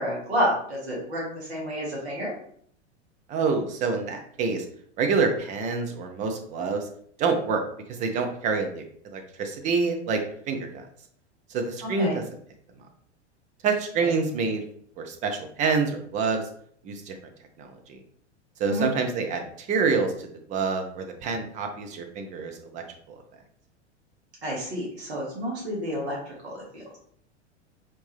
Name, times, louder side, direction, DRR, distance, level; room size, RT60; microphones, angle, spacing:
voice 1, 0.0-2.3 11.8-12.2 14.0-14.1 18.7-18.9 24.4-27.0, equal, 65° right, -4 dB, 1.5 m, -30 dB
voice 2, 3.3-4.7 5.0-6.9 7.2-7.6 7.9-8.8 9.1-10.2 10.5-10.8 11.5-12.2 13.6-14.6 15.0-16.4 16.8-17.2 17.6-18.0 18.6-23.2, right 4 dB, 20° right, 5 dB, 0.5 m, -27 dB
4.4 x 2.7 x 3.2 m, 0.62 s
figure-of-eight pair, 90°, 35 cm